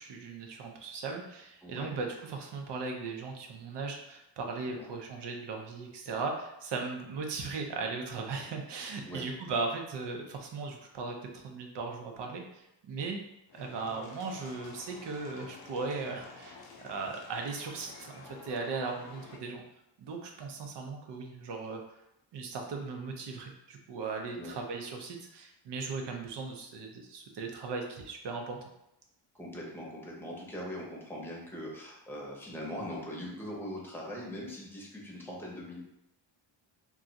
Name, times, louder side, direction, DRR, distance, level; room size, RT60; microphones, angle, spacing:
voice 1, 0.0-13.2 13.5-19.6 20.0-21.8 22.3-28.7, right 4 dB, 65° right, 2 dB, 0.7 m, -38 dB
voice 2, 1.6-1.9 4.6-4.9 9.1-9.3 24.4-24.6 29.3-35.8, equal, 5° left, -4 dB, 0.8 m, -41 dB
sound 1, 13.5-19.4, left 4 dB, 55° left, 0.6 m, -50 dB
2.4 x 2.3 x 3.9 m, 0.84 s
cardioid pair, 130°, 45 cm